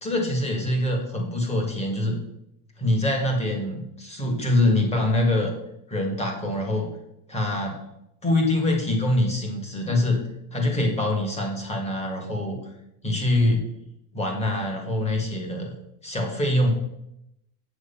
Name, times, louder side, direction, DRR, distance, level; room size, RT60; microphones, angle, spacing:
voice 1, 0.0-2.2 2.8-5.5 5.9-6.9 7.3-7.8 8.2-10.2 10.5-12.7 13.0-13.6 14.1-15.7 16.0-16.7, left 1 dB, 15° left, 2 dB, 1.8 m, -24 dB
7.9 x 7.7 x 5.7 m, 0.81 s
cardioid pair, 165°, 49 cm